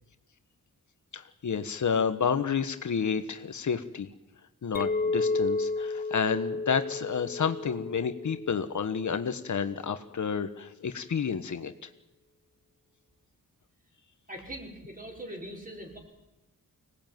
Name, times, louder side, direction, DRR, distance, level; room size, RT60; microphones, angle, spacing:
voice 1, 1.1-4.1 4.6-11.9, left 6 dB, 55° left, 9 dB, 1.4 m, -30 dB
Chink clink, 4.7-9.2, left 3 dB, 25° left, 0.9 m, -32 dB
voice 2, 14.3-16.0, right 1 dB, 25° right, 0 dB, 5.9 m, -41 dB
25.0 x 19.0 x 9.3 m, 1.0 s
wide cardioid pair, 145°, 34 cm